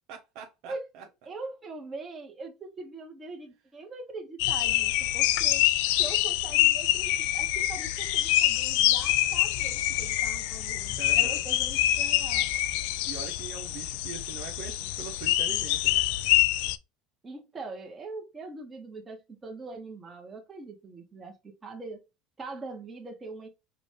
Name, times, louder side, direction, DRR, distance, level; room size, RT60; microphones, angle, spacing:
voice 1, 0.1-1.1 11.0-11.4 13.0-16.0, right 7 dB, 70° right, 0.8 m, -42 dB
voice 2, 1.3-5.7 6.0-12.5 17.2-22.0 22.4-23.5, right 3 dB, 20° right, 1.3 m, -42 dB
sound 1, 4.4-16.8, left 15 dB, 80° left, 0.4 m, -26 dB
5.0 x 2.6 x 3.3 m
supercardioid pair, 105°, 0 cm